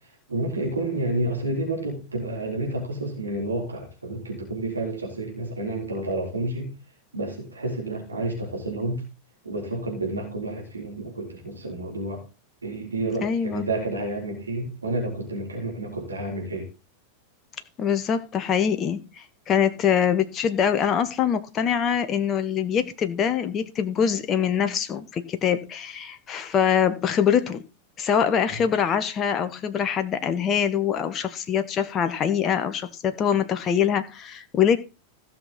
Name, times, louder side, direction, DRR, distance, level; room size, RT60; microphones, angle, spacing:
voice 1, 0.3-6.7 7.1-9.0 9.4-12.2 12.6-16.7 28.5-28.6, right 2 dB, 75° right, 3.7 m, -30 dB
voice 2, 13.2-13.6 17.8-27.6 28.0-34.8, left 8 dB, 30° left, 0.9 m, -24 dB
16.0 x 6.0 x 3.9 m
figure-of-eight pair, 90°, 0 cm